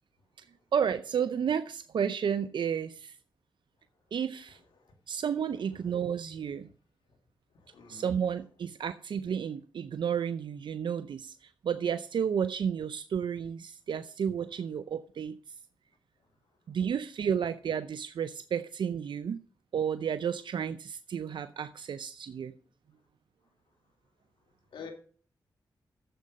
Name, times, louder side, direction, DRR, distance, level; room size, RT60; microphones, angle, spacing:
voice 1, 0.7-3.1 4.1-4.6 5.1-6.7 7.9-11.4 11.6-15.4 16.7-19.4 19.7-22.5, right 7 dB, 70° right, 0.5 m, -32 dB
voice 2, 4.5-4.9 5.5-5.8 7.5-8.1 24.7-24.9, left 6 dB, 85° left, 2.3 m, -49 dB
11.0 x 7.7 x 5.2 m
cardioid pair, 45°, 8 cm